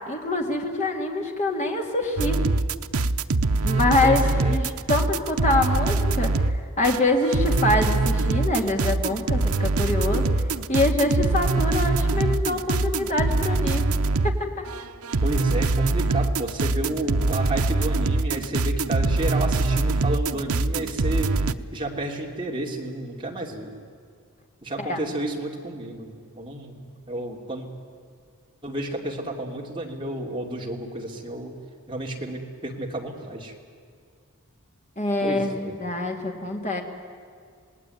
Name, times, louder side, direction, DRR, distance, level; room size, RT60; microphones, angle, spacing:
voice 1, 0.1-2.4 3.6-10.3 10.7-13.9 14.2-14.5 24.8-25.0 35.0-36.8, left 2 dB, 30° left, 2 dB, 2.5 m, -25 dB
sound 1, 2.2-14.4 14.7-21.5, right 3 dB, 80° right, 0.8 m, -23 dB
voice 2, 4.0-4.6 15.2-21.3 21.7-23.7 24.6-26.8 27.1-27.7 28.6-31.5 31.9-33.5 35.2-35.7, right 1 dB, 20° right, -1 dB, 2.9 m, -31 dB
27.5 x 19.0 x 9.3 m, 2.2 s
head